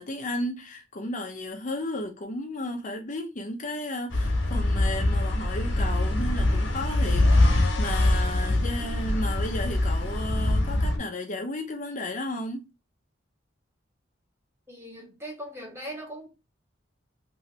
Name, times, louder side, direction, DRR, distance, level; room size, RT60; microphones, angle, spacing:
voice 1, 0.0-12.6, left 1 dB, 40° left, 0.6 m, -34 dB
sound 1, 4.1-11.0, left 1 dB, 80° left, 1.1 m, -24 dB
voice 2, 14.7-16.3, equal, 15° right, 1.2 m, -39 dB
3.1 x 2.8 x 3.0 m
head